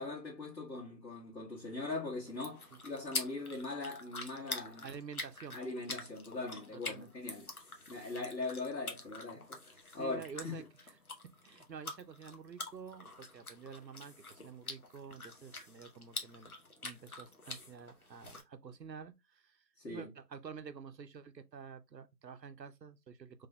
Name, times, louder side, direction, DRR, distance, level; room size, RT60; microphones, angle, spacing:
voice 1, 0.0-4.9 5.5-7.5 7.9-10.6 19.8-20.1, left 3 dB, 85° left, 1.6 m, -41 dB
sound 1, 2.3-18.4, left 3 dB, 60° left, 0.9 m, -46 dB
voice 2, 4.8-5.6 6.9-7.1 9.9-10.9 11.4-16.5 16.8-19.6 19.9-23.5, right 6 dB, 80° right, 0.7 m, -49 dB
3.5 x 3.3 x 2.2 m
figure-of-eight pair, 180°, 50 cm